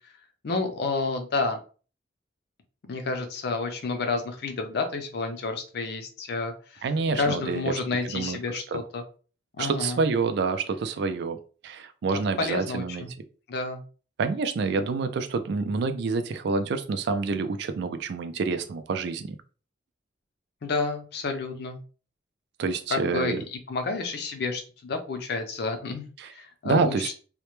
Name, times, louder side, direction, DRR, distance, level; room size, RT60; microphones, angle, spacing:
voice 1, 0.4-1.6 2.9-6.9 7.2-9.0 9.6-10.0 12.4-13.1 13.5-13.8 20.6-21.8 22.9-27.2, left 3 dB, 60° left, 6 dB, 0.5 m, -30 dB
voice 2, 6.8-7.7 8.1-8.4 8.7-8.8 9.6-11.4 11.6-13.0 14.2-19.3 22.6-23.4 26.2-26.3 26.6-27.2, right 4 dB, 65° right, 9 dB, 0.3 m, -27 dB
2.1 x 2.1 x 3.0 m, 0.38 s
head